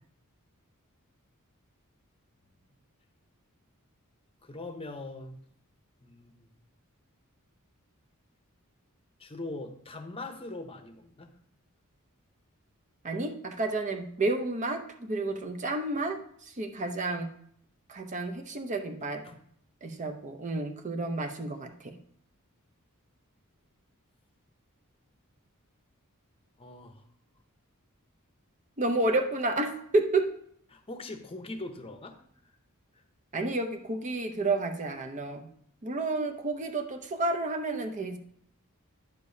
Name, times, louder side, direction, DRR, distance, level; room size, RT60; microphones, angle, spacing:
voice 1, 4.4-5.3 6.0-6.5 9.2-11.3 19.2-19.4 26.6-27.0 30.7-32.2, left 2 dB, 25° left, 7 dB, 0.8 m, -41 dB
voice 2, 13.0-17.3 17.9-19.2 19.8-21.9 28.8-30.3 33.3-35.5 35.8-38.2, right 2 dB, 35° right, 5 dB, 0.7 m, -30 dB
9.6 x 6.7 x 2.7 m, 0.66 s
head